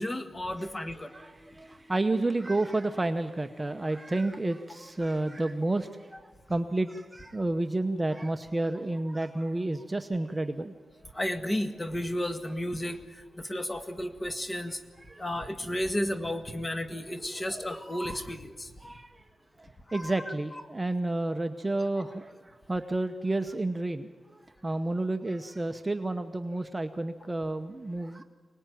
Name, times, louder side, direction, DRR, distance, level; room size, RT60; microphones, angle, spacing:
voice 1, 0.0-1.1 6.1-6.2 11.1-14.8 15.2-18.7 19.9-20.1 20.5-20.6, left 1 dB, 20° left, 8 dB, 1.6 m, -33 dB
voice 2, 1.1-6.1 6.5-10.7 15.1-15.2 18.8-19.2 19.6-22.4 22.7-28.2, right 2 dB, 15° right, 7 dB, 0.9 m, -30 dB
24.5 x 19.0 x 9.3 m, 1.4 s
wide cardioid pair, 125°, 0 cm